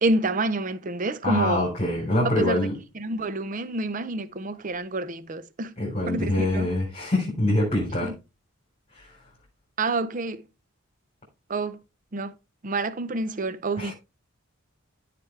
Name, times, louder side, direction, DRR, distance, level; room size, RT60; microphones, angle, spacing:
voice 1, 0.0-1.7 2.4-2.7 3.0-5.7 6.1-6.7 8.0-8.1 9.8-10.4 11.5-11.8 12.1-12.3 12.6-13.9, right 2 dB, 35° right, 0.6 m, -28 dB
voice 2, 1.2-2.8 5.8-8.1 8.9-9.1 13.8-13.9, left 1 dB, 30° left, 3.6 m, -25 dB
14.0 x 5.1 x 3.2 m
head